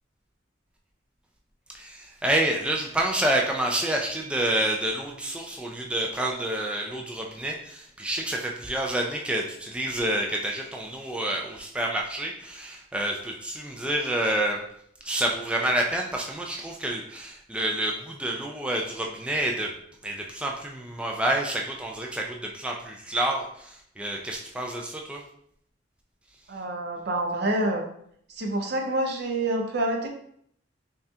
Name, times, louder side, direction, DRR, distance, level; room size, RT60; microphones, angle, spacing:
voice 1, 1.7-14.6 15.0-19.7 20.0-25.2, right 1 dB, 5° right, -1 dB, 0.3 m, -28 dB
voice 2, 26.5-27.8 28.3-30.1, right 1 dB, 60° right, 2 dB, 0.7 m, -27 dB
5.5 x 2.3 x 2.7 m, 0.68 s
head